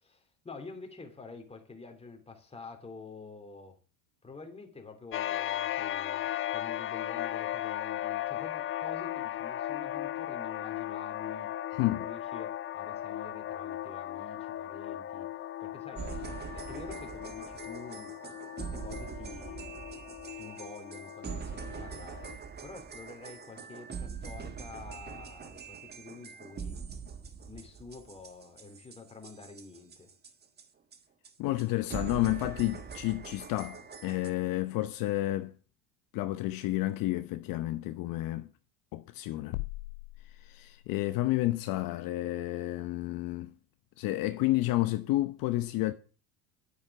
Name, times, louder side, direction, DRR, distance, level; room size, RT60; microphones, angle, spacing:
voice 1, 0.0-3.8 4.2-11.5 11.8-15.3 15.6-16.1 16.5-18.1 18.6-19.8 20.3-22.3 22.6-26.8 27.5-30.1, left 3 dB, 15° left, 2.9 m, -48 dB
sound 1, 5.1-22.4, left 12 dB, 30° left, 0.6 m, -37 dB
sound 2, 16.0-30.7 30.9-31.0 31.2-31.3 31.6-31.7 31.9-34.3, right 6 dB, 25° right, 1.4 m, -43 dB
voice 2, 31.4-35.5 36.1-38.5 38.9-39.6 40.4-43.5 44.0-45.9, left 17 dB, 55° left, 0.9 m, -30 dB
sound 3, 39.5-41.1, left 21 dB, 85° left, 0.6 m, -40 dB
9.6 x 8.7 x 5.9 m
supercardioid pair, 105°, 40 cm